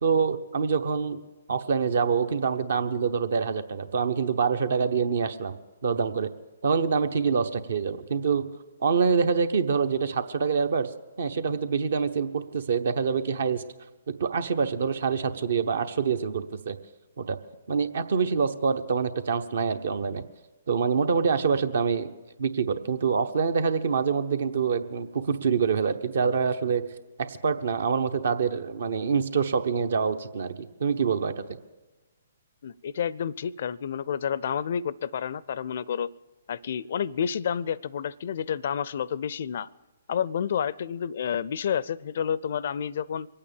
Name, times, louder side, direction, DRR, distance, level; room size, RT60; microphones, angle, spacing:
voice 1, 0.0-1.2 1.5-5.6 5.8-6.3 6.6-8.4 8.8-10.9 11.2-13.6 14.2-16.8 17.2-17.4 17.7-20.3 20.7-22.1 22.4-26.8 27.2-30.5 30.8-31.4, right 6 dB, 65° right, 10 dB, 0.9 m, -25 dB
voice 2, 32.6-36.1 36.5-39.7 40.1-43.3, left 8 dB, 60° left, 22 dB, 0.4 m, -30 dB
23.5 x 8.8 x 7.1 m, 1.1 s
hypercardioid pair, 130°, 0 cm